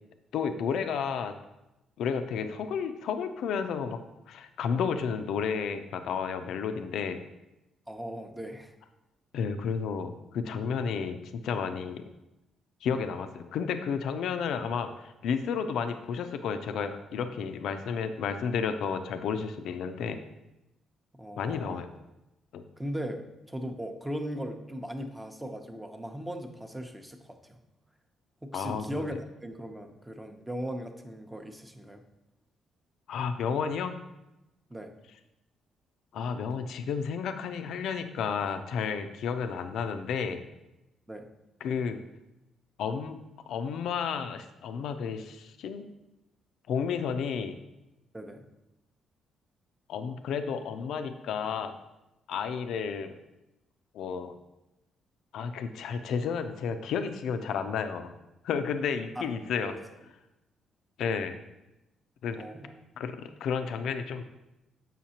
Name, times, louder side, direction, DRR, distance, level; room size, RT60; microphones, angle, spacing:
voice 1, 0.3-1.3 2.0-4.0 4.3-7.2 9.3-12.0 12.8-20.2 21.4-21.9 22.5-22.6 28.5-29.1 33.1-33.9 36.1-40.4 41.6-42.0 42.8-43.2 43.5-45.9 46.7-47.6 49.9-51.8 52.3-53.1 53.9-54.4 55.3-58.1 58.4-59.7 61.0-61.3 62.2-62.4 63.0-64.2, left 6 dB, 75° left, 8 dB, 0.4 m, -32 dB
voice 2, 7.9-8.7 21.2-21.8 22.8-27.6 28.4-32.0 34.7-34.9 41.1-41.3 48.1-48.4 59.2-59.3 59.6-59.8 62.4-62.8, equal, 10° right, 5 dB, 0.7 m, -38 dB
7.3 x 5.5 x 2.8 m, 0.95 s
cardioid pair, 90°, 0 cm